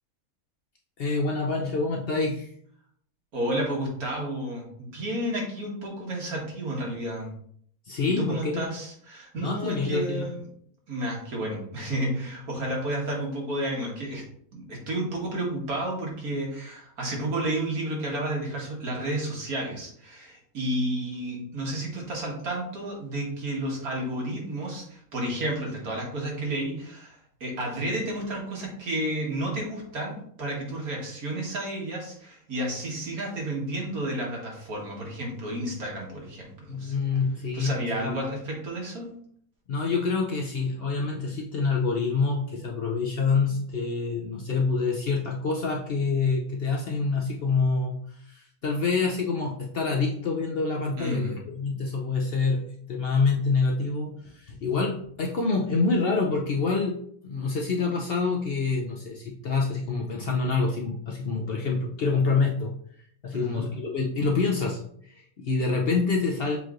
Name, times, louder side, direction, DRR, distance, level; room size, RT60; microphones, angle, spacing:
voice 1, 1.0-2.5 7.9-8.6 9.4-10.3 36.7-38.3 39.7-56.9 57.2-62.7 63.2-66.6, left 4 dB, 60° left, 0 dB, 0.6 m, -27 dB
voice 2, 3.3-7.3 8.1-10.4 10.9-14.2 14.5-36.9 37.5-39.1 51.0-51.4 63.3-63.7, right 1 dB, 90° right, -2 dB, 1.9 m, -31 dB
7.1 x 3.0 x 2.4 m, 0.63 s
omnidirectional pair, 1.5 m